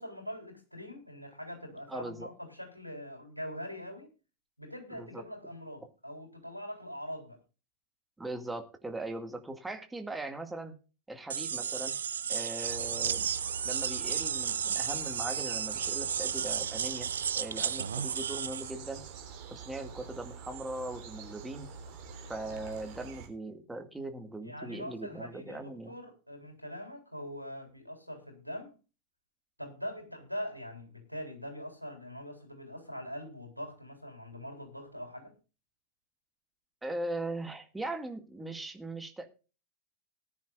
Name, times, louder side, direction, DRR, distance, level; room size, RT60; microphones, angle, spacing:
voice 1, 0.0-4.1 4.6-7.4 22.5-22.6 24.4-28.7 29.6-35.3, equal, 90° left, 4 dB, 3.8 m, -43 dB
voice 2, 1.9-2.3 4.9-5.2 8.2-10.8 11.1-11.9 12.3-13.3 13.6-19.0 19.5-21.7 22.3-25.9 36.8-39.3, right 2 dB, 5° right, 6 dB, 2.1 m, -40 dB
sound 1, 11.3-18.7, right 7 dB, 70° right, 0.5 m, -33 dB
sound 2, 12.6-23.3, right 6 dB, 45° right, 3.5 m, -46 dB
19.0 x 10.5 x 2.4 m, 0.33 s
figure-of-eight pair, 90°, 0 cm